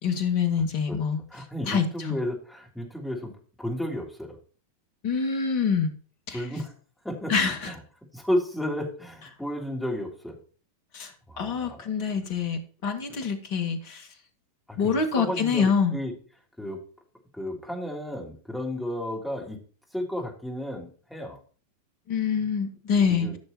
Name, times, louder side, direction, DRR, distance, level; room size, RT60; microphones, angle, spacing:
voice 1, 0.0-1.2 1.7-2.2 5.0-5.9 6.3-6.4 7.3-7.7 10.9-11.1 11.4-14.0 14.8-15.9 22.1-23.3, left 6 dB, 45° left, 6 dB, 2.1 m, -25 dB
voice 2, 1.3-3.3 3.6-4.4 6.3-6.7 7.0-7.8 8.1-10.4 11.3-11.8 14.7-16.1 16.6-16.8 17.3-19.6 19.9-21.4 22.4-22.5 23.1-23.4, left 1 dB, 5° left, -1 dB, 3.3 m, -32 dB
14.5 x 6.6 x 3.0 m, 0.39 s
figure-of-eight pair, 90°, 0 cm